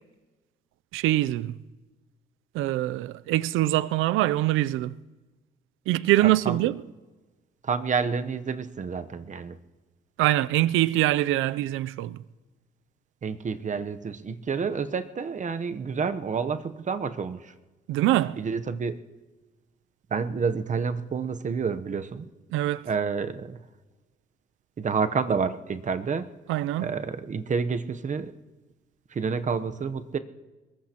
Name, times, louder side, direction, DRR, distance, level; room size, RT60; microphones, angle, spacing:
voice 1, 0.9-1.6 2.5-5.0 5.9-6.8 10.2-12.2 17.9-18.4 22.5-22.9 26.5-26.9, right 15 dB, 90° right, 0.4 m, -24 dB
voice 2, 6.2-6.7 7.6-9.6 13.2-17.5 18.4-19.0 20.1-22.3 22.9-23.6 24.8-26.3 26.8-28.3 29.1-30.2, right 5 dB, 40° right, 0.8 m, -29 dB
22.0 x 20.0 x 2.9 m
cardioid pair, 90°, 20 cm